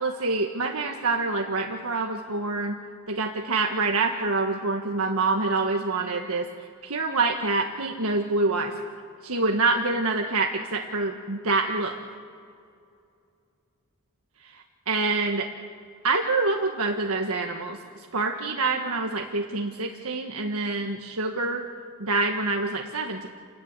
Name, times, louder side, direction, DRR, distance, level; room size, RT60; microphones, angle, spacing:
voice 1, 0.0-2.8 3.1-6.5 6.8-8.7 9.2-11.9 14.4-15.5 16.0-21.6 22.0-23.3, right 3 dB, 80° right, 2 dB, 1.6 m, -26 dB
29.0 x 15.0 x 9.9 m, 2.4 s
head